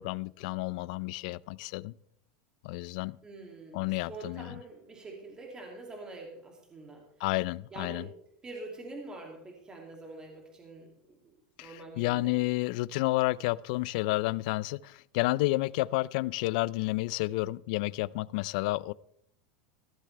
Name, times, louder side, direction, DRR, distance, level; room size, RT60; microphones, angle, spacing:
voice 1, 0.0-1.9 2.6-3.2 3.7-4.6 7.2-8.1 11.6-18.9, left 19 dB, 65° left, 0.4 m, -30 dB
voice 2, 3.2-3.8 4.1-7.0 7.7-8.1 8.4-10.9 11.2-12.4, right 2 dB, 15° right, 2.5 m, -45 dB
15.5 x 13.5 x 3.3 m
supercardioid pair, 145°, 5 cm